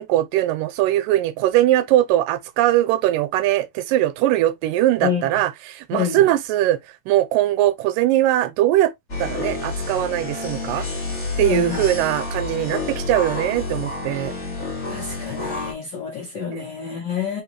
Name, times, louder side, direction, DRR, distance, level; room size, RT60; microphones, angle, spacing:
voice 1, 0.0-6.8 7.1-8.9 9.2-10.9 11.4-14.3 16.5-16.7, right 14 dB, 85° right, 2.3 m, -20 dB
voice 2, 5.9-6.2 11.4-11.9 14.9-17.4, left 7 dB, 65° left, 1.0 m, -27 dB
sound 1, 9.1-15.7, left 3 dB, 30° left, 1.3 m, -29 dB
4.4 x 3.9 x 2.9 m
omnidirectional pair, 3.9 m